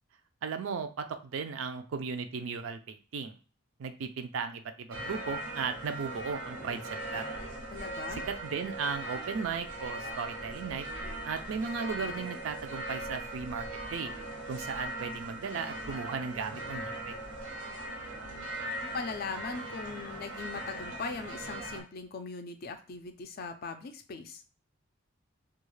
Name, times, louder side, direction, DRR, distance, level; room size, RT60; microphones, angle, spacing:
voice 1, 0.4-3.3 3.8-7.2 8.2-10.9 11.2-13.7 13.9-14.1 14.5-17.1, right 5 dB, 70° right, 8 dB, 0.4 m, -36 dB
sound 1, 4.9-21.8, right 1 dB, 90° right, 1.0 m, -40 dB
voice 2, 7.7-8.2 18.9-24.4, left 4 dB, 45° left, 7 dB, 0.4 m, -40 dB
2.3 x 2.2 x 3.1 m, 0.37 s
head